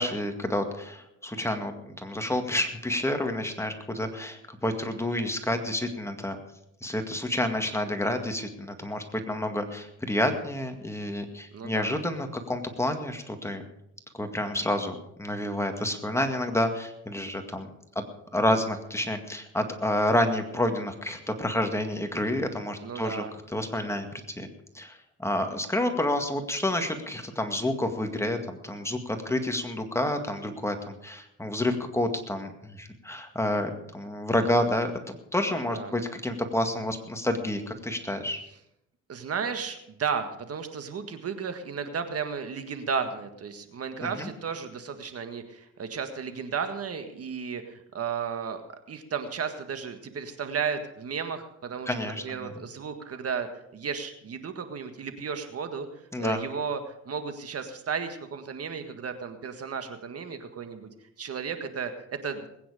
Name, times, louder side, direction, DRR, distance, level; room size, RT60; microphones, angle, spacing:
voice 1, 0.0-6.4 6.8-13.6 14.1-17.7 18.0-18.1 18.3-23.2 23.5-24.1 24.4-24.5 24.7-34.9 35.3-38.4 44.2-44.3 51.9-52.5 56.1-56.4, left 1 dB, 10° left, 5 dB, 2.0 m, -29 dB
voice 2, 11.5-11.9 22.8-23.3 35.6-35.9 39.1-48.6 48.9-55.9 56.2-60.9 61.2-62.5, right 6 dB, 50° right, 8 dB, 1.7 m, -34 dB
20.5 x 9.3 x 5.0 m, 0.79 s
cardioid pair, 90°, 30 cm